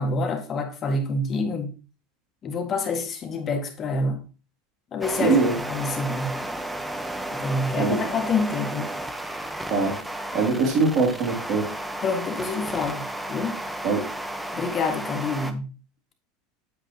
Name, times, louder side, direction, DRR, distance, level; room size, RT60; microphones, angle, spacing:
voice 1, 0.0-1.7 2.4-4.2 4.9-5.4 5.7-6.4 7.3-8.9 12.0-13.6 14.5-15.7, left 3 dB, 40° left, 1.8 m, -27 dB
sound 1, 5.0-15.5, right 1 dB, 5° right, 0.9 m, -33 dB
voice 2, 5.2-5.5 7.8-8.0 9.7-9.9 10.3-11.6 13.8-14.0, right 4 dB, 50° right, 2.6 m, -22 dB
8.3 x 7.9 x 2.9 m
hypercardioid pair, 85°, 0 cm